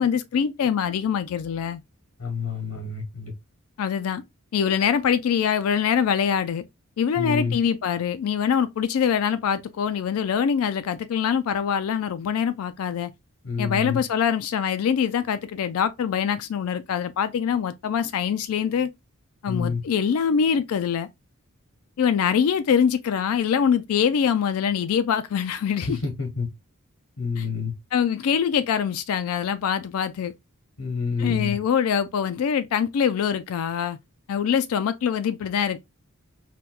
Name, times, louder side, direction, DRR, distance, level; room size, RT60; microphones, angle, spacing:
voice 1, 0.0-1.8 3.8-4.2 4.5-6.6 7.0-13.1 13.6-18.9 19.4-21.1 22.0-26.0 27.4-27.5 27.9-30.3 31.2-34.0 34.3-35.8, left 7 dB, 70° left, 0.3 m, -24 dB
voice 2, 2.2-3.3 7.2-7.6 13.4-14.0 19.5-19.8 25.8-26.5 27.2-27.7 30.8-31.6, left 5 dB, 85° left, 1.0 m, -28 dB
4.1 x 2.2 x 2.3 m
head